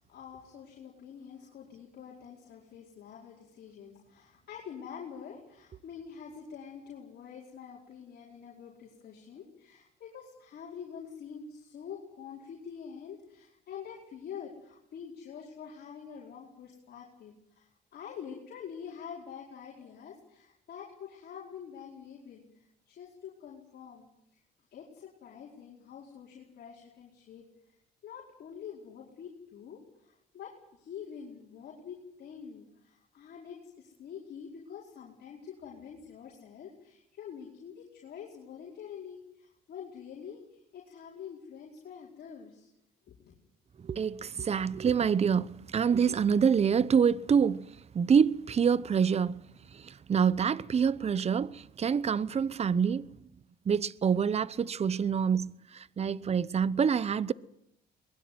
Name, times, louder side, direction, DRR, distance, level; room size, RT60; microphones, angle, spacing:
voice 1, 0.0-24.4 24.7-27.5 28.0-42.7 43.1-43.3, left 7 dB, 65° left, 4.9 m, -46 dB
voice 2, 43.8-49.4 49.7-53.1 53.7-57.3, right 7 dB, 35° right, 0.9 m, -26 dB
22.5 x 21.0 x 9.5 m
cardioid pair, 90°, 18 cm